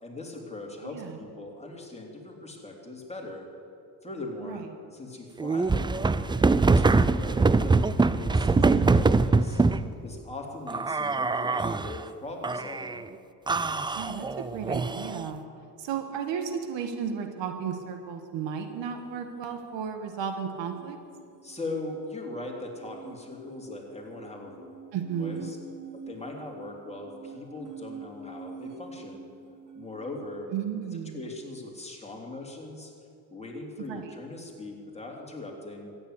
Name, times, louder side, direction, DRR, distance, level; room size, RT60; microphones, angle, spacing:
voice 1, 0.0-3.5 4.0-4.6 4.9-6.4 6.6-8.6 8.9-9.6 10.0-13.1 21.4-24.8 25.2-25.6 25.9-29.3 29.8-30.5 30.9-32.9 33.3-35.9, left 2 dB, 15° left, 0 dB, 3.4 m, -40 dB
voice 2, 0.8-1.2 4.4-4.7 8.5-9.1 13.9-15.4 15.8-21.0 24.9-25.5 30.5-31.2 33.8-34.1, right 7 dB, 70° right, 6 dB, 1.6 m, -34 dB
sound 1, 5.4-9.9 10.7-12.0 12.4-13.0 13.5-15.3, right 3 dB, 10° right, 0.4 m, -23 dB
sound 2, 20.6-30.3, right 4 dB, 40° right, 2.1 m, -46 dB
14.0 x 9.9 x 8.3 m, 2.5 s
supercardioid pair, 75°, 47 cm